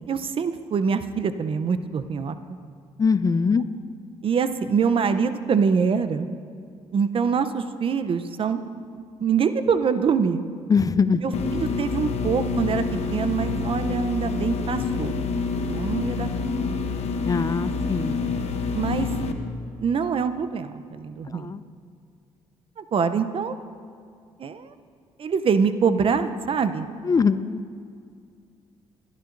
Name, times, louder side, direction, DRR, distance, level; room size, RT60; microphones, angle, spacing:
voice 1, 0.1-2.4 4.2-6.3 6.9-8.6 8.9-10.5 11.2-12.8 13.1-15.1 15.7-16.3 16.7-16.8 18.7-19.1 19.8-21.5 22.8-23.5 24.4-24.7 25.2-26.9, right 6 dB, 50° right, 11 dB, 0.6 m, -24 dB
voice 2, 3.0-3.7 10.7-11.2 17.2-18.2 21.3-21.6 27.0-27.6, left 5 dB, 30° left, 14 dB, 0.4 m, -22 dB
sound 1, 11.3-19.3, left 4 dB, 65° left, 0.9 m, -27 dB
20.0 x 11.5 x 2.6 m, 2.3 s
supercardioid pair, 70°, 12 cm